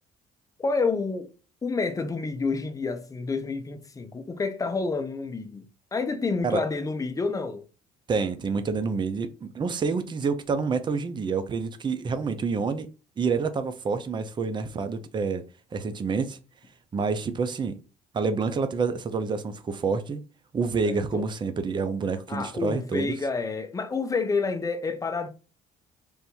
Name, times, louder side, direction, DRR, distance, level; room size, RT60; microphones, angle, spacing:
voice 1, 0.6-1.3 1.6-5.7 5.9-7.6 20.8-21.3 22.3-25.3, left 4 dB, 20° left, 0.7 m, -29 dB
voice 2, 8.1-12.9 13.2-15.4 15.7-16.4 16.9-17.8 18.1-20.2 20.5-23.1, right 4 dB, 25° right, 0.5 m, -28 dB
3.5 x 2.6 x 4.5 m
cardioid pair, 110°, 17 cm